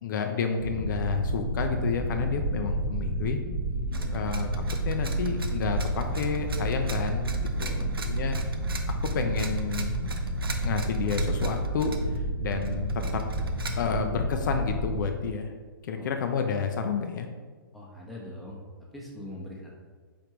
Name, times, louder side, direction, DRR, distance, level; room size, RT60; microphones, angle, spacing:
voice 1, 0.0-3.4 4.1-4.5 4.8-8.4 8.9-10.1 10.6-13.2 13.7-15.5 15.8-17.3, left 6 dB, 55° left, 5 dB, 0.4 m, -30 dB
sound 1, 0.6-15.0, right 1 dB, 65° right, 0.8 m, -30 dB
voice 2, 3.9-4.3 7.5-8.2 16.0-16.1 17.7-18.6 18.9-19.7, left 1 dB, ahead, -5 dB, 0.8 m, -43 dB
sound 2, 3.9-12.2 12.5-13.7, right 4 dB, 90° right, 0.5 m, -42 dB
4.6 x 3.5 x 3.0 m, 1.5 s
hypercardioid pair, 120°, 12 cm